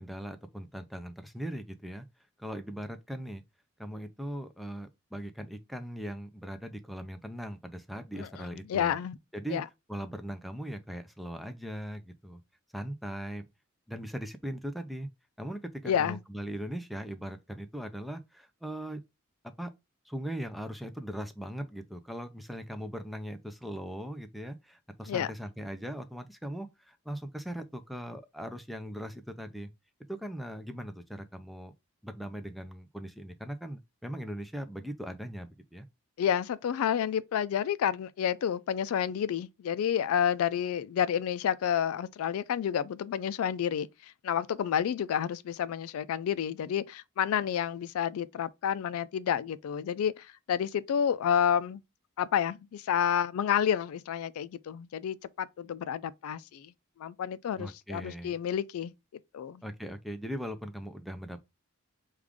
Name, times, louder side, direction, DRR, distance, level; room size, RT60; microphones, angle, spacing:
voice 1, 0.0-2.0 2.4-3.4 3.8-9.0 9.3-9.6 9.9-12.4 12.7-13.4 13.9-15.1 15.4-19.0 19.6-19.7 20.1-29.7 30.1-31.7 32.0-35.9 57.6-58.3 59.6-61.4, equal, ahead, 0.4 m, -39 dB
voice 2, 8.2-9.2 9.5-9.6 15.8-16.2 25.1-25.3 36.2-51.8 52.2-56.7 57.0-58.9 59.3-59.6, left 9 dB, 85° left, 0.3 m, -30 dB
4.9 x 2.4 x 3.6 m
head